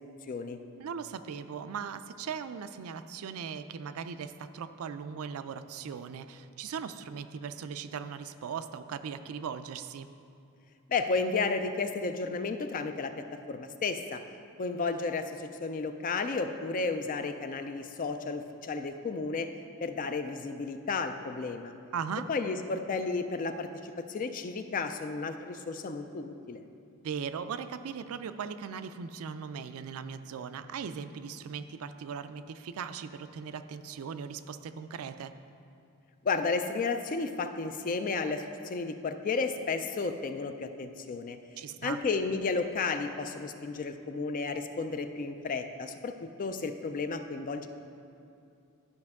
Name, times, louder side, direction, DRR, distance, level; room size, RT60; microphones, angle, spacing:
voice 1, 0.3-0.6 10.9-14.2 14.6-19.5 19.8-21.7 22.3-26.6 36.2-41.4 41.8-47.7, left 4 dB, 35° left, 8 dB, 0.3 m, -33 dB
voice 2, 0.8-10.1 21.9-22.3 27.0-35.3 41.6-42.0, right 6 dB, 70° right, 11 dB, 0.4 m, -39 dB
11.5 x 5.2 x 3.5 m, 2.6 s
head